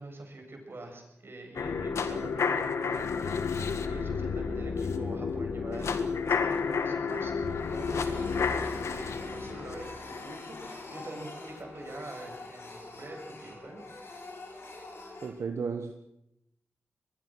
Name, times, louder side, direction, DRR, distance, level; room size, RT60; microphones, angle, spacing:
voice 1, 0.0-13.8, right 2 dB, 55° right, 2 dB, 7.8 m, -45 dB
sound 1, 1.5-11.6 12.0-12.1, left 5 dB, 90° left, 1.7 m, -31 dB
Printer, 4.0-4.3 4.6-4.8 5.2-6.8 7.0-15.3, left 2 dB, 70° left, 7.8 m, -46 dB
voice 2, 15.2-15.9, right 5 dB, 80° right, 6 dB, 1.5 m, -33 dB
23.5 x 21.5 x 6.4 m, 0.83 s
cardioid pair, 50°, 5 cm